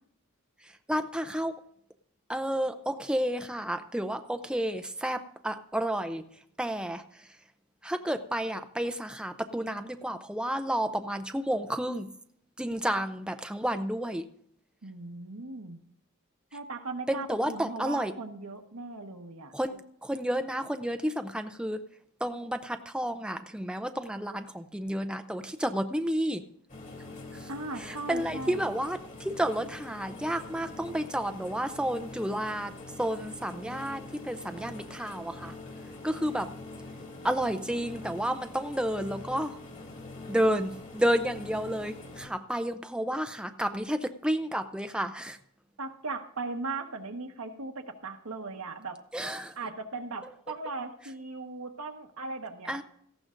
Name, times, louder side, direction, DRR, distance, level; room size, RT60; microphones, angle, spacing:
voice 1, 0.6-1.6 2.3-6.2 6.6-7.3 7.8-12.1 12.6-14.2 17.1-18.1 19.5-21.8 22.2-26.4 27.3-27.5 27.8-32.7 33.0-35.5 36.0-36.5 37.2-39.6 40.3-45.4 49.1-49.6 52.7-52.8, equal, 5° right, 8 dB, 0.5 m, -31 dB
voice 2, 14.8-15.8 16.5-19.5 27.5-28.7 45.8-49.0 49.6-52.8, right 3 dB, 85° right, 4 dB, 1.3 m, -38 dB
sound 1, 26.7-42.3, left 2 dB, 40° left, 2.6 m, -44 dB
18.0 x 15.0 x 2.6 m, 0.67 s
head